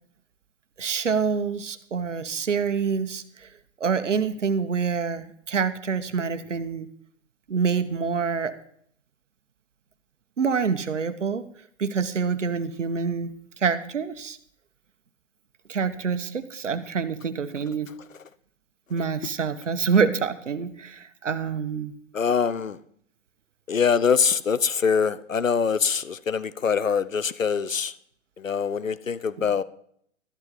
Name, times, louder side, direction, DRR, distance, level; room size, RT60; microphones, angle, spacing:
voice 1, 0.8-3.5 3.8-6.9 7.5-8.5 10.4-11.4 11.8-14.4 15.7-17.9 18.9-21.9, right 5 dB, 70° right, 1.2 m, -26 dB
voice 2, 22.1-22.8 23.7-27.9 28.4-29.6, left 6 dB, 85° left, 0.7 m, -24 dB
13.0 x 11.5 x 4.0 m
figure-of-eight pair, 115°, 38 cm